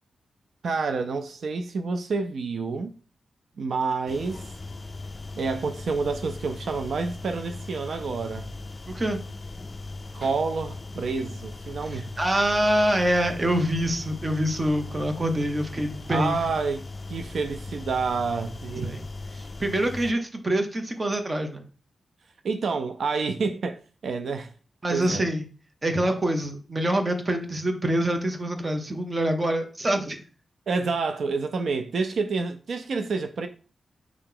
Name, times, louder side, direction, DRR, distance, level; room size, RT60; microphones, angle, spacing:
voice 1, 0.6-2.9 3.6-4.4 5.4-8.5 10.1-12.1 16.1-16.8 17.1-19.0 22.4-24.5 24.9-25.3 30.7-33.5, right 4 dB, 70° right, 0.3 m, -28 dB
sound 1, 4.1-20.1, left 3 dB, 30° left, 0.4 m, -39 dB
voice 2, 11.9-16.4 18.8-19.0 19.3-21.7 24.8-25.5 25.8-30.2, right 1 dB, 25° right, 0.6 m, -25 dB
4.6 x 2.8 x 3.7 m
wide cardioid pair, 155°, 0 cm